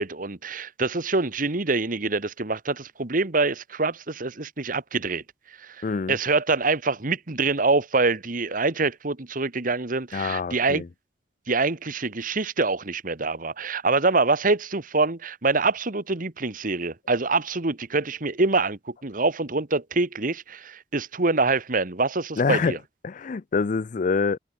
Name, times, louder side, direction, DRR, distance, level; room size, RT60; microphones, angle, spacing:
voice 1, 0.0-5.2 5.6-5.8 6.1-10.8 11.5-22.8, right 3 dB, 50° right, 1.6 m, -25 dB
voice 2, 5.8-6.2 10.1-10.9 22.4-22.8 23.0-24.4, left 4 dB, 45° left, 0.4 m, -25 dB
head